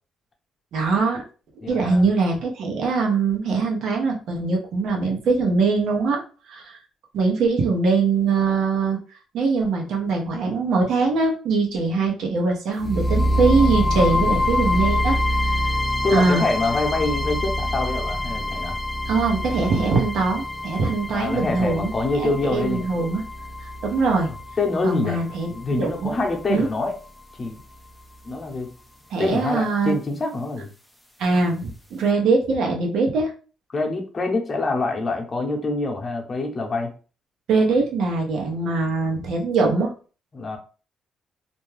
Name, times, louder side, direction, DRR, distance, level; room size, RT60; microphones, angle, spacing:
voice 1, 0.7-1.2 1.7-6.2 6.5-6.8 7.1-9.0 9.3-15.2 15.5-15.7 16.1-16.4 19.1-23.2 23.6-24.3 24.8-25.5 25.8-26.1 26.5-26.7 29.1-30.0 31.2-33.3 37.5-39.9, right 4 dB, 75° right, 1 dB, 0.9 m, -22 dB
voice 2, 1.6-2.0 13.9-14.2 16.0-18.8 21.1-22.8 24.6-25.2 25.5-27.0 27.4-27.6 28.2-28.7 29.2-30.7 33.7-36.9 40.3-40.6, left 3 dB, 35° left, 1 dB, 0.8 m, -25 dB
sound 1, 12.8-26.8, left 1 dB, 5° left, 0.5 m, -26 dB
2.6 x 2.2 x 3.2 m, 0.36 s
cardioid pair, 90°, 0 cm